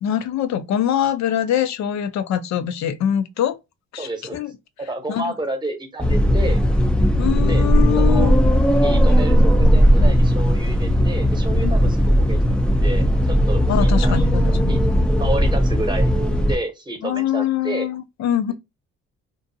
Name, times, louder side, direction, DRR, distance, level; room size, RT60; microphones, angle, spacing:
voice 1, 0.0-3.6 3.9-4.5 5.1-5.3 7.2-8.4 11.6-11.7 13.7-14.8 17.0-18.5, left 10 dB, 65° left, 0.5 m, -23 dB
voice 2, 4.0-4.4 4.9-6.6 7.5-7.7 8.0-8.4 8.8-14.2 14.5-14.8 15.2-16.1 16.4-17.9, right 1 dB, 15° right, 0.8 m, -30 dB
sound 1, 6.0-16.6, equal, 5° left, 0.4 m, -17 dB
2.6 x 2.2 x 2.6 m
cardioid pair, 90°, 30 cm